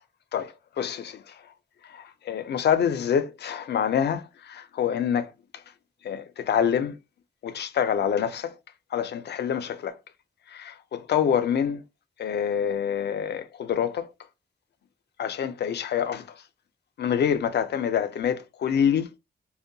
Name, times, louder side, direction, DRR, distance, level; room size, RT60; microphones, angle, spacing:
voice 1, 0.3-1.4 1.9-5.3 6.0-7.0 7.4-8.5 8.9-9.9 10.5-11.8 12.2-14.1 15.2-16.3 17.0-19.1, left 8 dB, 75° left, 0.4 m, -26 dB
3.6 x 2.1 x 2.6 m
wide cardioid pair, 170°, 17 cm